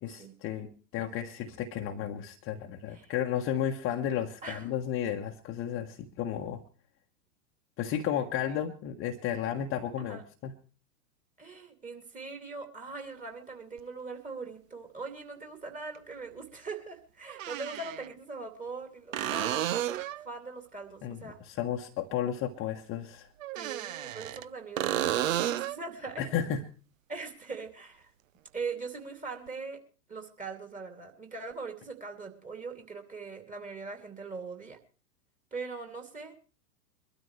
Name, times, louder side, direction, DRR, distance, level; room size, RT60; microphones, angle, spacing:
voice 1, 0.0-6.6 7.8-10.5 21.0-23.3 26.2-26.6, left 9 dB, 25° left, 3 dB, 1.1 m, -33 dB
voice 2, 11.4-21.4 23.6-26.2 27.1-28.1 28.5-29.8 30.1-34.8 35.5-36.3, right 4 dB, 15° right, 5 dB, 2.7 m, -41 dB
sound 1, 13.8-13.9 15.9-16.0 17.3-18.1 19.1-20.3 23.4-24.5 24.8-25.8 29.5-29.6, right 12 dB, 55° right, 0.7 m, -32 dB
23.5 x 12.5 x 3.2 m, 0.37 s
figure-of-eight pair, 105°, 49 cm